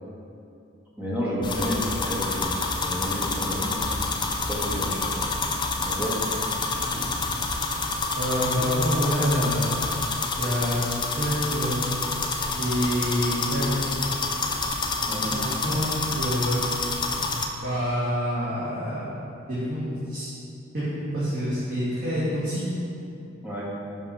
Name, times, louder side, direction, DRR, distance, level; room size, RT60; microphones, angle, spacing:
voice 1, 1.0-4.0 4.5-5.2 5.8-6.1 15.1-15.3 23.4-23.7, equal, 10° right, -7 dB, 1.3 m, -31 dB
sound 1, 1.4-17.4, left 3 dB, 20° left, 0.3 m, -28 dB
voice 2, 8.1-9.9 10.4-11.9 12.6-14.0 15.3-16.6 17.6-20.3 20.7-22.6, equal, 50° right, -12 dB, 1.5 m, -27 dB
5.5 x 3.9 x 5.5 m, 2.6 s
head